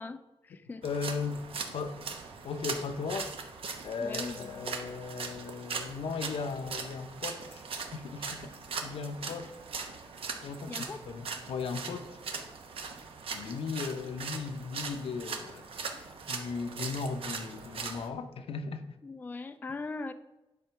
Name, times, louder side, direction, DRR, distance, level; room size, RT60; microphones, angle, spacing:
voice 1, 0.0-0.8 4.0-4.7 10.7-11.0 19.0-20.1, left 3 dB, 20° left, 0.3 m, -40 dB
voice 2, 0.8-1.4 1.7-2.0 2.4-3.3 3.8-7.6 7.9-9.5 10.4-12.2 13.3-19.0, left 5 dB, 75° left, 0.7 m, -37 dB
sound 1, 0.8-18.1, right 5 dB, 70° right, 1.0 m, -40 dB
9.8 x 4.3 x 5.8 m
wide cardioid pair, 165°, 10 cm